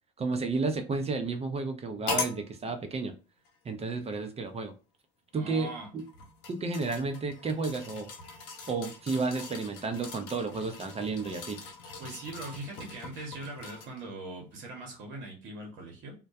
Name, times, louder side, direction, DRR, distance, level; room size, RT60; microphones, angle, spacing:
voice 1, 0.2-3.2 3.6-4.7 5.3-6.0 6.5-8.1 8.7-11.6, right 4 dB, 30° right, 0.6 m, -32 dB
sound 1, 2.1-2.4 3.4-3.5 6.0-14.0 14.5-14.6, left 4 dB, 80° left, 0.7 m, -40 dB
voice 2, 5.3-5.9 12.0-16.1, right 2 dB, 65° right, 1.0 m, -41 dB
2.2 x 2.1 x 2.6 m
hypercardioid pair, 65°, 21 cm